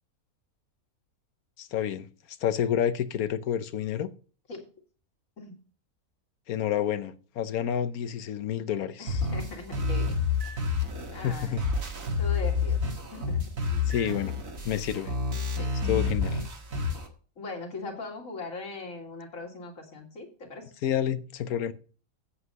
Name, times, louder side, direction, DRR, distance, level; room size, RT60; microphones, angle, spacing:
voice 1, 1.6-2.1 2.4-4.1 6.5-9.2 11.2-11.6 13.9-14.3 14.6-15.1 15.9-16.4 20.8-21.7, left 9 dB, 80° left, 1.3 m, -29 dB
voice 2, 9.0-10.1 10.7-10.8 11.1-11.7 12.2-12.8 13.1-13.9 15.6-15.7 17.4-20.7, left 3 dB, 65° left, 2.5 m, -40 dB
sound 1, 9.1-17.1, left 4 dB, 65° right, 2.2 m, -29 dB
8.2 x 8.0 x 5.4 m
omnidirectional pair, 1.5 m